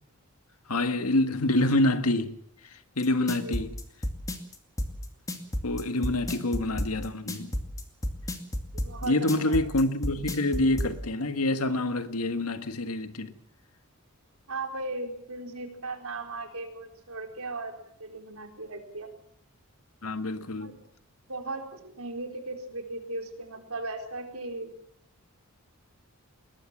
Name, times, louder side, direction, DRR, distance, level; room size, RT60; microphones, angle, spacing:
voice 1, 0.7-2.4 2.6-3.7 5.6-7.5 9.0-13.3 20.0-20.8, left 2 dB, 80° left, 1.7 m, -27 dB
sound 1, 3.0-10.9, left 1 dB, 15° left, 2.4 m, -31 dB
voice 2, 8.7-9.6 14.5-19.1 20.6-20.7 21.3-24.7, right 2 dB, 70° right, 4.1 m, -37 dB
21.0 x 20.0 x 7.4 m
head